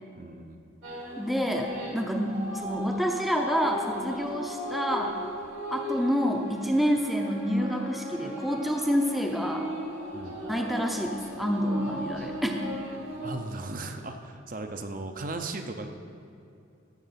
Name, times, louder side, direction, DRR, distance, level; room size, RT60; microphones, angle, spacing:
voice 1, 0.1-0.6 10.1-10.4 13.2-15.9, right 2 dB, 40° right, 5 dB, 0.6 m, -37 dB
sound 1, 0.8-13.3, equal, 80° right, 2.3 m, -37 dB
voice 2, 1.2-5.2 5.7-9.7 10.5-12.7, equal, ahead, 2 dB, 0.6 m, -28 dB
13.5 x 5.8 x 5.8 m, 2.6 s
head